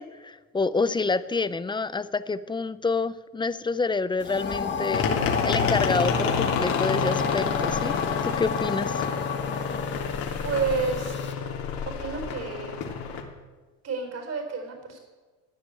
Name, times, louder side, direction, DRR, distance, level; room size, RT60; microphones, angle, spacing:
voice 1, 0.0-5.1 5.4-8.0 8.2-8.9, left 4 dB, 10° left, 15 dB, 0.5 m, -28 dB
sound 1, 4.2-11.3, left 5 dB, 30° left, 1.7 m, -31 dB
sound 2, 4.9-13.2, left 6 dB, 60° left, 3.2 m, -28 dB
voice 2, 10.4-11.2 11.8-12.8 13.8-15.0, right 5 dB, 40° right, 4 dB, 4.4 m, -30 dB
15.0 x 10.5 x 8.8 m, 1.3 s
cardioid pair, 125°, 39 cm